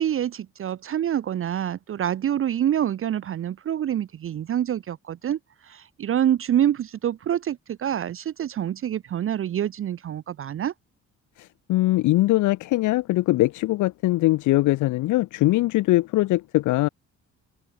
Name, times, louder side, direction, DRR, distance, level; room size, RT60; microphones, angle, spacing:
voice 1, 0.0-10.7, right 10 dB, 45° right, 0.6 m, -26 dB
voice 2, 11.4-16.9, left 18 dB, 80° left, 0.6 m, -21 dB
cardioid pair, 90°, 30 cm